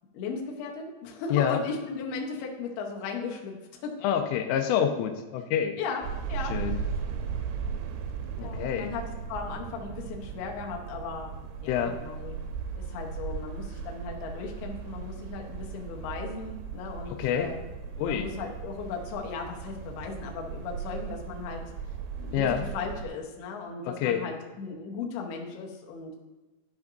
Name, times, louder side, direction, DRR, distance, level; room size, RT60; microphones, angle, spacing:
voice 1, 0.1-3.9 5.8-6.9 8.4-9.0 9.3-11.3 11.6-12.3 12.8-17.6 18.1-21.6 22.2-26.2, left 5 dB, 70° left, 0 dB, 2.5 m, -37 dB
voice 2, 4.0-5.8 6.5-6.8 8.4-8.9 11.7-12.0 17.1-17.5 18.0-18.3 22.3-22.6 23.8-24.3, left 9 dB, 90° left, 6 dB, 3.2 m, -27 dB
sound 1, 6.0-23.1, right 6 dB, 85° right, 2.8 m, -37 dB
12.5 x 6.0 x 2.6 m, 1.2 s
omnidirectional pair, 5.6 m